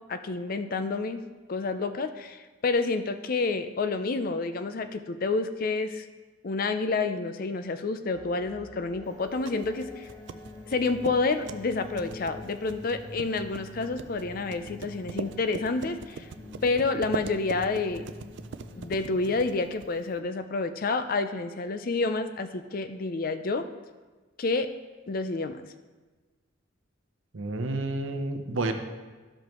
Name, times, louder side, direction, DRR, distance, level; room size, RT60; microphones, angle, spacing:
voice 1, 0.1-6.1 6.4-10.1 10.7-16.3 16.6-18.1 18.7-23.6 24.4-24.7 25.1-25.6, left 3 dB, 45° left, 10 dB, 0.4 m, -29 dB
sound 1, 8.1-20.3, left 1 dB, 20° left, 0.8 m, -46 dB
sound 2, 9.1-20.2, right 5 dB, 60° right, 0.3 m, -42 dB
voice 2, 27.3-28.7, right 2 dB, 75° right, 6 dB, 0.8 m, -30 dB
12.5 x 5.2 x 3.0 m, 1.3 s
head